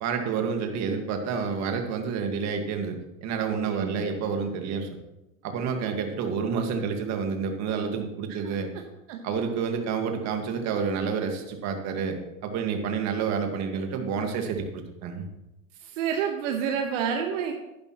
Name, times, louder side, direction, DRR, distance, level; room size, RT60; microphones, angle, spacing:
voice 1, 0.0-4.9 5.4-8.7 9.2-15.2, right 6 dB, 40° right, 5 dB, 1.7 m, -29 dB
voice 2, 3.6-4.0 8.3-8.6 9.1-9.2 15.8-17.5, right 7 dB, 65° right, 4 dB, 1.2 m, -29 dB
10.5 x 10.5 x 3.0 m, 0.95 s
hypercardioid pair, 115°, 41 cm